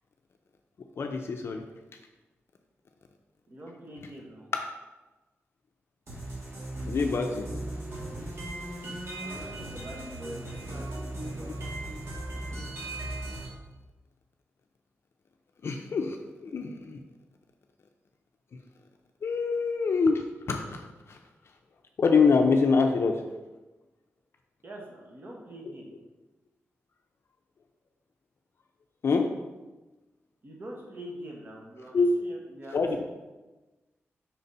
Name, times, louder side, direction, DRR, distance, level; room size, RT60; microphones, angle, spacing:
voice 1, 1.0-1.6 6.9-7.5 15.6-17.0 18.5-18.6 19.2-21.2 22.0-23.2 29.0-29.3 31.9-32.1 32.7-33.0, left 4 dB, 60° left, 4 dB, 0.4 m, -25 dB
voice 2, 3.5-4.5 9.2-10.9 11.2-11.5 24.6-25.9 30.4-33.0, right 1 dB, 45° right, -2 dB, 1.2 m, -44 dB
sound 1, 6.1-13.5, right 1 dB, 60° right, 1.8 m, -37 dB
4.4 x 4.0 x 5.4 m, 1.1 s
wide cardioid pair, 100°, 5 cm